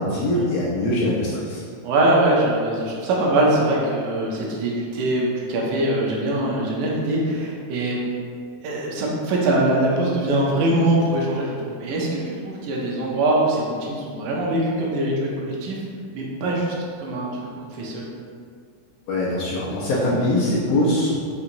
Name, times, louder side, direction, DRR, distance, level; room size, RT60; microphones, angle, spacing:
voice 1, 0.0-1.6 19.1-21.1, left 1 dB, 75° left, -7 dB, 1.6 m, -22 dB
voice 2, 1.8-8.0 8.6-15.8 16.1-18.1, right 1 dB, 80° right, -3 dB, 2.1 m, -22 dB
5.6 x 2.8 x 2.5 m, 2.1 s
omnidirectional pair, 3.5 m